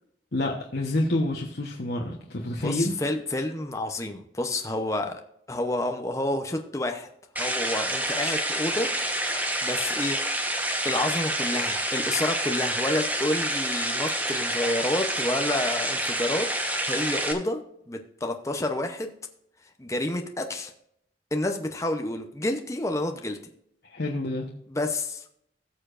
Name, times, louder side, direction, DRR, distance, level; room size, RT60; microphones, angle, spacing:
voice 1, 0.3-2.9 23.9-24.5, left 1 dB, 60° left, -1 dB, 1.1 m, -28 dB
voice 2, 2.5-5.2 5.5-7.1 7.4-8.9 9.2-10.4 10.8-19.1 19.8-20.7 21.3-23.4 24.7-25.2, left 1 dB, 15° left, 4 dB, 0.7 m, -29 dB
sound 1, 7.4-17.3, right 1 dB, 10° right, 1.0 m, -28 dB
17.0 x 6.8 x 2.5 m, 0.72 s
head